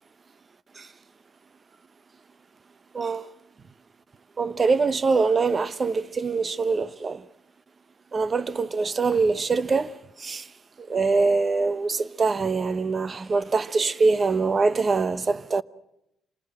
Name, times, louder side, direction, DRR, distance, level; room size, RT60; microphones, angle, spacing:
voice 1, 2.9-3.3 4.4-7.2 8.1-10.5 10.8-15.6, right 4 dB, 35° right, 0.8 m, -24 dB
26.5 x 19.5 x 7.5 m
cardioid pair, 90°, 0 cm